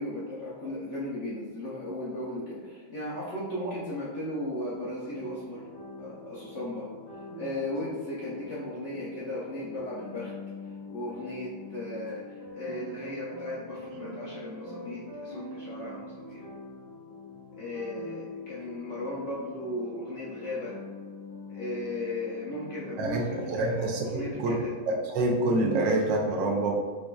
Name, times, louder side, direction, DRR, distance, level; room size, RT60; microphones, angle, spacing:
voice 1, 0.0-5.6 6.0-6.9 7.4-10.3 10.9-16.4 17.6-20.7 21.5-24.8, left 1 dB, 65° left, -7 dB, 0.7 m, -36 dB
sound 1, 4.7-24.1, left 2 dB, 40° left, 1.1 m, -43 dB
voice 2, 23.0-24.5 24.9-26.7, right 2 dB, 90° right, 1 dB, 1.3 m, -27 dB
5.0 x 2.5 x 2.2 m, 1.5 s
omnidirectional pair, 1.9 m